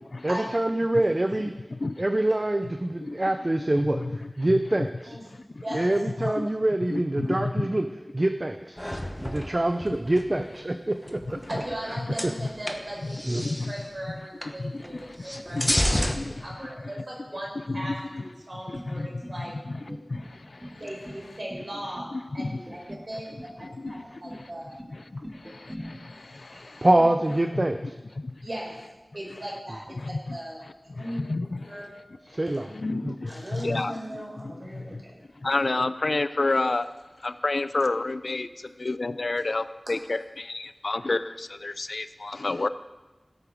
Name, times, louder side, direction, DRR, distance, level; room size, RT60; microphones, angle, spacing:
voice 1, 0.2-1.5 2.0-4.0 4.4-5.2 5.7-7.9 8.1-8.8 9.2-11.4 12.2-12.3 13.2-13.5 26.8-27.9 32.3-32.7 33.0-33.1, right 1 dB, 35° right, 7 dB, 0.6 m, -25 dB
voice 2, 1.7-2.0 3.0-3.4 3.7-4.9 5.3-5.8 6.2-6.5 6.9-7.7 9.3-9.4 9.9-10.0 11.5-11.6 12.1-12.5 13.1-13.7 14.5-16.7 17.7-18.2 18.7-20.8 22.1-22.6 23.3-24.5 24.9-26.9 27.5-27.9 28.2-28.5 30.0-30.4 30.9-31.9 32.3-34.0 34.3-35.0 35.4-36.9 37.2-42.7, left 2 dB, 70° left, 13 dB, 0.5 m, -31 dB
voice 3, 5.6-5.9 6.2-6.3 11.5-15.8 16.1-17.9 18.5-19.5 20.8-23.3 23.9-24.7 26.5-26.6 28.4-28.8 29.1-30.6 30.9-31.2 31.7-31.9 33.3-35.2, right 1 dB, 55° right, -3 dB, 4.8 m, -38 dB
sound 1, 8.8-10.3 11.0-11.9 12.1-13.8 14.4-14.6 14.8-16.2, equal, 10° left, 1.2 m, -30 dB
sound 2, 18.7-19.4 19.7-20.3 20.6-21.2 21.5-22.1 22.5-23.1 23.4-24.0 24.3-24.9 25.2-25.9, equal, 15° right, 2.1 m, -41 dB
17.0 x 8.4 x 5.1 m, 1.2 s
wide cardioid pair, 55°, 0 cm